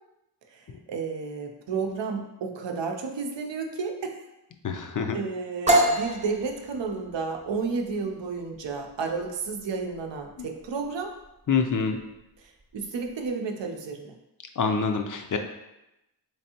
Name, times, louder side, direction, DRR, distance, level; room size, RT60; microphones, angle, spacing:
voice 1, 0.5-4.2 5.1-11.1 12.4-14.2, right 4 dB, 85° right, 3 dB, 0.6 m, -32 dB
voice 2, 4.6-5.2 11.5-12.0 14.6-15.4, left 5 dB, 50° left, 5 dB, 0.5 m, -26 dB
sound 1, 5.7-13.3, right 1 dB, 15° right, 0.5 m, -29 dB
3.5 x 3.3 x 2.8 m, 0.91 s
cardioid pair, 50°, 42 cm